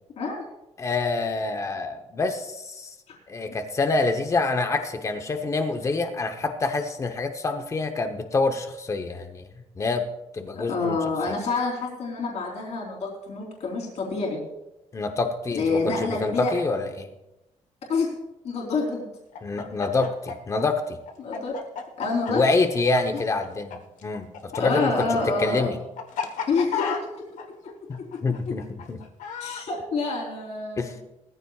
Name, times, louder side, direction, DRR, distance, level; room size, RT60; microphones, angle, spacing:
voice 1, 0.8-2.9 3.3-9.4 9.8-10.1 10.3-11.0 14.9-17.1 19.4-21.0 22.3-25.8 27.9-29.0 30.8-30.9, left 3 dB, 25° left, 6 dB, 1.0 m, -26 dB
voice 2, 10.5-14.4 15.5-16.5 17.9-18.1 18.4-19.1 21.2-21.6 22.0-22.4 24.6-25.7 26.5-27.0 29.4-30.9, left 3 dB, 60° left, -2 dB, 3.6 m, -27 dB
Chicken rooster, 19.3-23.8 24.0-29.6, left 7 dB, 80° left, 1.3 m, -33 dB
19.5 x 14.5 x 2.4 m, 0.95 s
cardioid pair, 165°, 13 cm